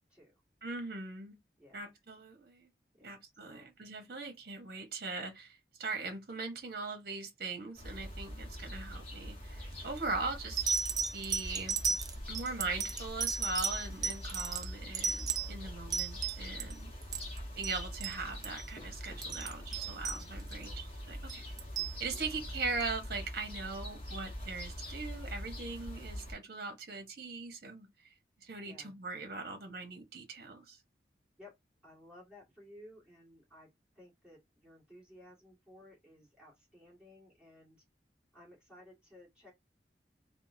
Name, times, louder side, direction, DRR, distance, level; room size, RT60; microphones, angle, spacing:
voice 1, 0.1-0.4 1.6-1.9 2.9-3.1 3.4-3.7 16.9-17.3 22.0-22.4 28.6-28.9 31.4-31.6 31.8-33.7 33.9-37.8 38.3-39.5, left 1 dB, 5° right, 1.9 m, -57 dB
voice 2, 0.6-1.3 1.7-2.7 3.0-10.7 11.1-11.8 12.3-16.9 17.6-21.4 22.0-27.9 28.4-30.8, right 3 dB, 55° right, 0.9 m, -40 dB
sound 1, 7.8-26.3, equal, 35° left, 1.0 m, -44 dB
sound 2, 9.7-10.0 10.6-16.7 17.0-17.4 17.6-17.8 18.0-18.2 18.4-18.6 19.1-20.7 21.3-21.9 22.8-22.9, right 6 dB, 20° right, 0.4 m, -34 dB
3.5 x 2.2 x 2.6 m
head